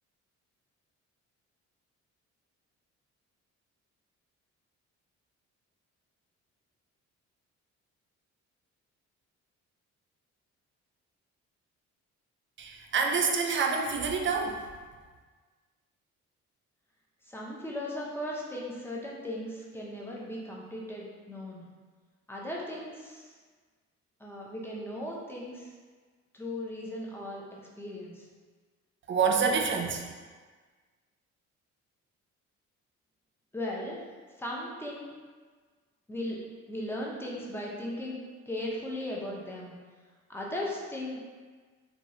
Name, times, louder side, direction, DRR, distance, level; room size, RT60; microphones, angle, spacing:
voice 1, 12.6-14.6 29.1-30.0, right 5 dB, 40° right, 2 dB, 0.4 m, -27 dB
voice 2, 17.3-21.7 22.3-23.3 24.2-25.7 26.3-27.4 27.8-28.3 33.5-34.0 34.4-35.1 36.1-36.4 36.7-39.7 40.3-41.2, left 1 dB, 10° left, -3 dB, 0.6 m, -37 dB
3.0 x 2.4 x 2.6 m, 1.5 s
cardioid pair, 90°, 30 cm